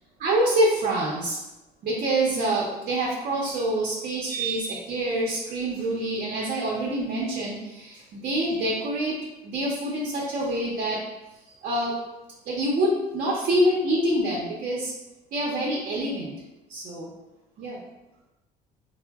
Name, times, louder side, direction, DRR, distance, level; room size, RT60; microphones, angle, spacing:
voice 1, 0.2-1.4 1.8-9.2 9.4-11.0 11.6-11.9 12.5-14.9 15.3-16.3 16.7-17.1 17.6-17.8, right 1 dB, 55° right, -3 dB, 0.6 m, -26 dB
3.6 x 2.0 x 2.2 m, 0.98 s
cardioid pair, 110°, 17 cm